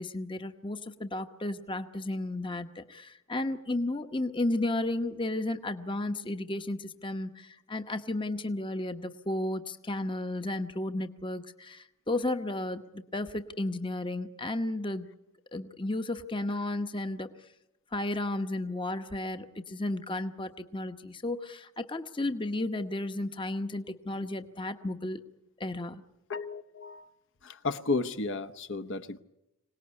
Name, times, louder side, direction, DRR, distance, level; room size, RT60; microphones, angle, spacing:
voice 1, 0.0-15.1 15.5-17.3 17.9-25.2 25.6-26.0, left 2 dB, 20° left, 0.9 m, -33 dB
voice 2, 26.3-27.1 27.4-29.2, left 3 dB, 55° left, 0.9 m, -33 dB
25.5 x 18.5 x 9.7 m
head